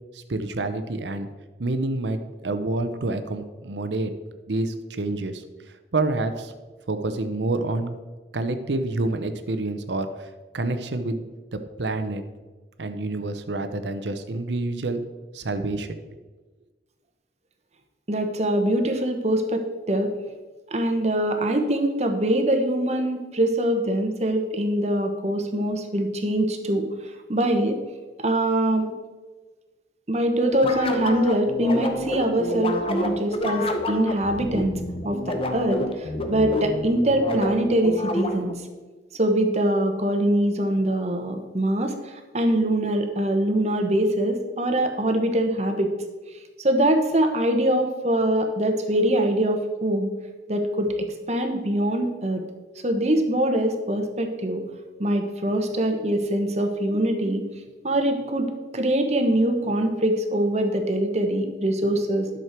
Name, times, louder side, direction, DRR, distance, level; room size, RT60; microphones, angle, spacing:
voice 1, 0.1-1.3 1.6-4.1 4.5-5.4 5.9-6.5 6.9-8.0 8.3-10.3 10.5-11.2 11.5-12.2 12.8-15.0 15.3-16.0, right 2 dB, 80° right, 9 dB, 0.7 m, -28 dB
voice 2, 18.1-20.1 20.7-26.9 27.3-27.8 28.2-28.9 30.1-34.8 35.0-38.5 39.1-45.9 46.6-50.1 50.5-52.4 52.8-54.6 55.0-57.4 57.8-58.5 58.7-62.3, right 1 dB, 40° right, 5 dB, 1.0 m, -23 dB
sound 1, 30.5-38.6, left 1 dB, 30° left, 0.8 m, -28 dB
11.0 x 6.4 x 4.5 m, 1.3 s
head